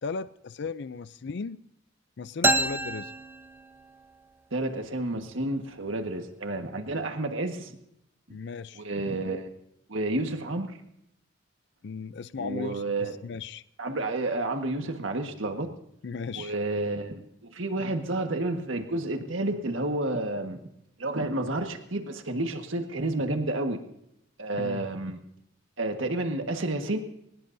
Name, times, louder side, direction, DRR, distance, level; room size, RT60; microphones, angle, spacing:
voice 1, 0.0-1.6 2.2-3.1 8.3-8.8 11.8-13.6 16.0-16.5 24.5-24.9, left 5 dB, 60° left, 14 dB, 0.5 m, -36 dB
sound 1, 2.4-4.1, right 2 dB, 10° right, 0.7 m, -28 dB
voice 2, 4.5-7.7 8.7-9.5 9.9-10.8 12.4-13.2 13.8-15.7 16.3-20.6 21.0-23.8 24.4-25.2 25.8-27.0, right 2 dB, 80° right, 5 dB, 1.6 m, -30 dB
22.5 x 20.0 x 2.7 m, 0.77 s
head